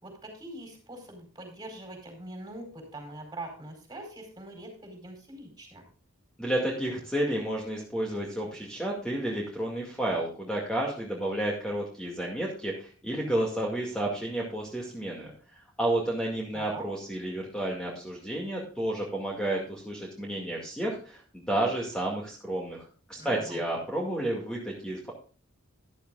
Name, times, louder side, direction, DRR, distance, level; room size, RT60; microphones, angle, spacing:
voice 1, 0.0-5.8 16.5-16.9 23.1-23.6, right 1 dB, 20° right, 4 dB, 4.6 m, -43 dB
voice 2, 6.4-25.1, right 1 dB, 5° left, -2 dB, 2.2 m, -31 dB
13.5 x 12.0 x 2.5 m, 0.39 s
head